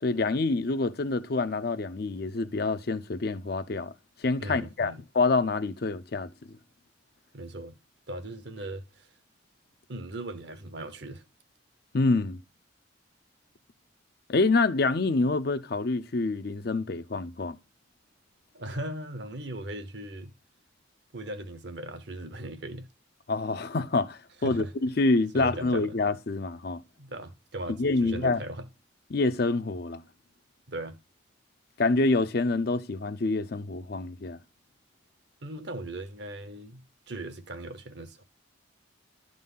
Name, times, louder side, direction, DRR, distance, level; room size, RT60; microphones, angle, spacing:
voice 1, 0.0-3.9 4.2-6.5 11.9-12.4 14.3-17.6 23.3-26.8 27.8-28.4 29.1-30.0 31.8-34.4, left 3 dB, 50° left, 0.5 m, -27 dB
voice 2, 4.4-5.0 7.3-7.8 8.1-9.1 9.9-11.2 18.5-20.3 21.1-22.9 24.4-24.7 25.3-25.9 27.0-28.6 30.7-31.0 35.4-36.8 37.1-38.2, right 1 dB, 55° right, 0.9 m, -38 dB
11.5 x 3.9 x 5.5 m
head